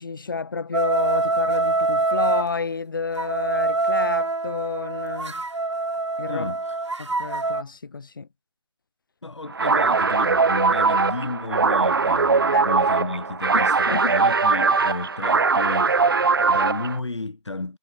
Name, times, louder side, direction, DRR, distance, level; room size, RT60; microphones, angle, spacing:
voice 1, 0.0-5.4 6.2-6.5 7.0-8.3 12.5-12.7 13.5-14.2, left 4 dB, 45° left, 3.3 m, -30 dB
sound 1, 0.7-2.5 3.2-7.6, right 3 dB, 75° right, 2.1 m, -25 dB
voice 2, 6.3-6.8 9.2-17.8, left 3 dB, 70° left, 3.5 m, -32 dB
sound 2, 9.5-17.0, right 4 dB, 50° right, 0.5 m, -20 dB
figure-of-eight pair, 165°, 15 cm